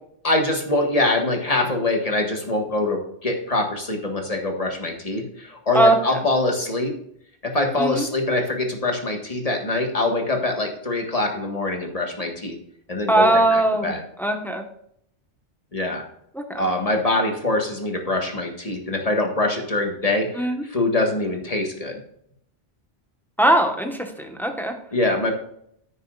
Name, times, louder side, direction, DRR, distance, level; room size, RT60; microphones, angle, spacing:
voice 1, 0.2-7.0 7.4-12.6 12.9-14.0 15.7-16.1 16.6-22.0 24.9-25.3, left 2 dB, 35° left, 2 dB, 1.7 m, -24 dB
voice 2, 13.1-13.9 14.2-14.6 16.3-16.7 20.4-20.6 23.4-24.7, right 1 dB, ahead, 4 dB, 1.2 m, -20 dB
9.6 x 9.5 x 2.5 m, 0.69 s
omnidirectional pair, 1.1 m